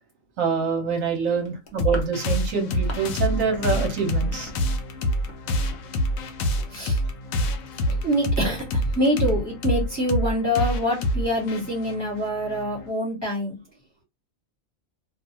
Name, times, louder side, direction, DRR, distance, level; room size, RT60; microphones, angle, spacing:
voice 1, 0.4-4.6, right 5 dB, 75° right, 3 dB, 1.1 m, -25 dB
sound 1, 1.5-3.1 3.4-3.7 3.9-5.4 5.7-5.9 6.2-6.3 6.6-6.7, left 2 dB, 50° left, 0.6 m, -41 dB
sound 2, 1.8-12.9, equal, 85° left, 1.0 m, -26 dB
voice 2, 7.9-13.6, equal, 20° left, -3 dB, 1.2 m, -25 dB
2.5 x 2.3 x 2.8 m, 0.24 s
omnidirectional pair, 1.4 m